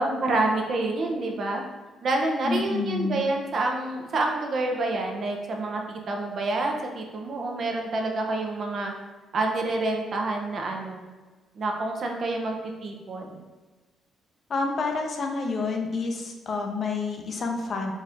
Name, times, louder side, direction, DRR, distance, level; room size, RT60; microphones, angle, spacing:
voice 1, 0.0-1.6 2.0-8.9 9.3-11.0 11.6-12.6 12.8-13.3, right 2 dB, 55° right, 2 dB, 0.6 m, -28 dB
voice 2, 2.4-3.2 14.5-17.9, left 3 dB, 50° left, 2 dB, 0.6 m, -28 dB
4.1 x 2.5 x 3.4 m, 1.3 s
cardioid pair, 90°, 0 cm